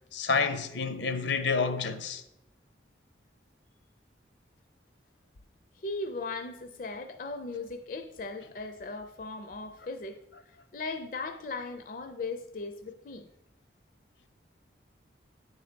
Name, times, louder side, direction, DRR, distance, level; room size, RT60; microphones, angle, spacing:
voice 1, 0.1-2.2, left 4 dB, 80° left, 0.7 m, -29 dB
voice 2, 5.7-10.2 10.5-13.3, left 3 dB, 50° left, 0.5 m, -38 dB
9.2 x 4.0 x 5.1 m
head